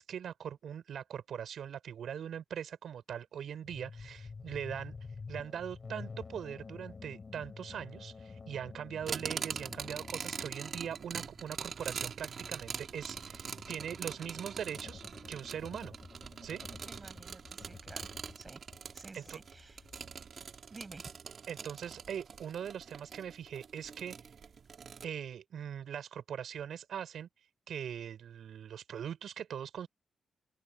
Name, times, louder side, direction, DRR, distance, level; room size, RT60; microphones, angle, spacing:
voice 1, 0.0-4.9 5.3-15.9 16.4-16.6 19.1-19.4 21.5-24.2 25.0-27.3 27.7-29.9, right 8 dB, 70° right, 4.9 m, -41 dB
sound 1, 3.6-18.9 19.2-20.2, left 4 dB, 35° left, 4.5 m, -50 dB
sound 2, 9.1-25.1, right 6 dB, 50° right, 2.9 m, -43 dB
voice 2, 16.9-18.1 18.4-18.6 18.9-19.9 20.7-21.1, right 3 dB, 25° right, 6.2 m, -51 dB
open air
wide cardioid pair, 135°, 0 cm